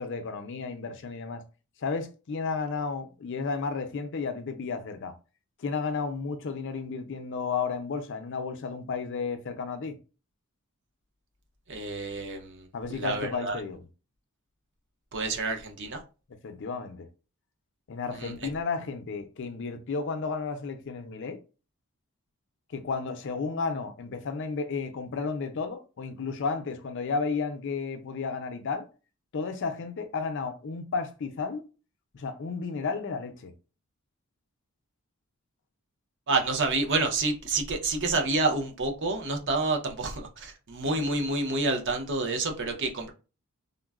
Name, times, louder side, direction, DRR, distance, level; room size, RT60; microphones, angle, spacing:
voice 1, 0.0-1.4 1.8-5.1 5.6-10.0 12.7-13.8 16.4-17.1 17.9-21.4 22.7-28.9 29.3-31.7 32.1-33.5, left 4 dB, 55° left, 0.4 m, -33 dB
voice 2, 11.7-13.6 15.1-16.0 18.2-18.3 36.3-43.1, right 3 dB, 55° right, 0.6 m, -28 dB
3.7 x 2.0 x 2.3 m
head